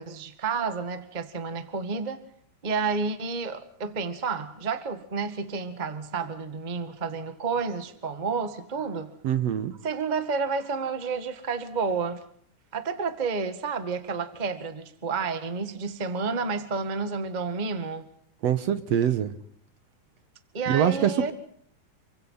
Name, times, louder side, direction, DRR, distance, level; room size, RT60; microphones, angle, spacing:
voice 1, 0.0-2.2 2.6-9.1 9.8-12.2 12.7-18.0 20.5-21.3, right 5 dB, 20° right, 1.2 m, -30 dB
voice 2, 9.2-9.7 18.4-19.3 20.7-21.3, right 9 dB, 65° right, 2.1 m, -24 dB
28.5 x 24.5 x 5.7 m
omnidirectional pair, 3.6 m